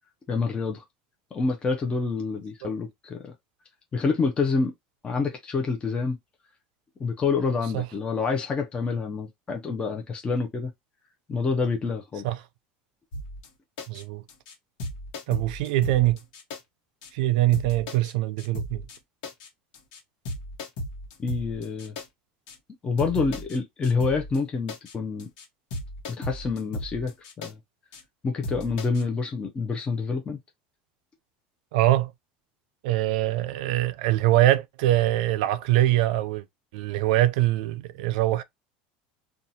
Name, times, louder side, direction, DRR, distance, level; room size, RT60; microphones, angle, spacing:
voice 1, 0.3-0.8 1.3-3.3 3.9-4.7 5.0-6.2 7.0-10.7 11.3-12.2 21.2-22.0 22.8-25.3 26.2-27.1 27.4-27.6 28.2-30.4, left 4 dB, 25° left, 0.6 m, -27 dB
sound 1, 13.1-13.5 13.8-14.0 14.3-14.5 14.8-16.6 17.0-17.1 17.5-18.1 18.4-19.0 19.2-19.5 19.7-20.0 20.2-22.1 22.5-22.6 23.0-23.6 23.8-24.4 24.7-24.9 25.2-25.4 25.7-27.5 27.9-28.0 28.4-29.0, left 1 dB, 75° left, 1.1 m, -36 dB
voice 2, 13.9-14.2 15.3-16.2 17.1-18.8 31.7-32.1 32.8-36.4 36.7-38.4, right 15 dB, 75° right, 0.4 m, -23 dB
2.7 x 2.3 x 2.7 m
supercardioid pair, 115°, 4 cm